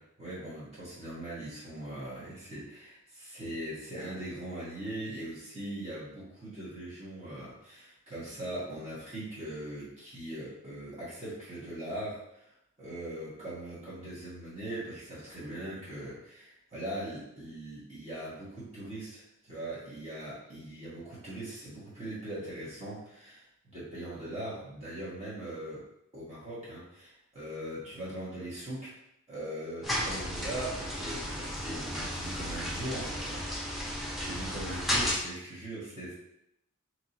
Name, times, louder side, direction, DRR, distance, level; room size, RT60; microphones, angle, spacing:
voice 1, 0.0-12.5 12.8-25.8 26.1-28.9 29.3-33.9 34.2-36.1, right 1 dB, 30° right, -10 dB, 1.5 m, -40 dB
sound 1, 29.8-35.1, equal, ahead, 0.8 m, -34 dB
4.8 x 3.1 x 2.8 m, 0.80 s
head